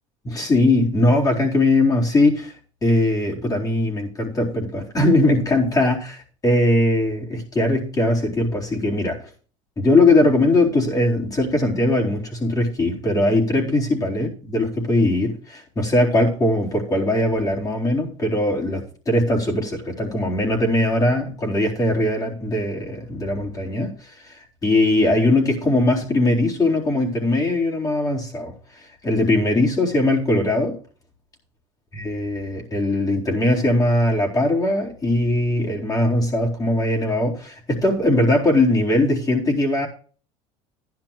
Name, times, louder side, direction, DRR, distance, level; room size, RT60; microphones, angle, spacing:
voice 1, 0.2-2.5 2.8-9.2 9.8-23.9 24.2-24.3 24.6-28.5 29.0-30.8 32.0-39.9, left 1 dB, 25° left, 4.0 m, -20 dB
15.0 x 10.5 x 2.5 m
supercardioid pair, 115°, 15 cm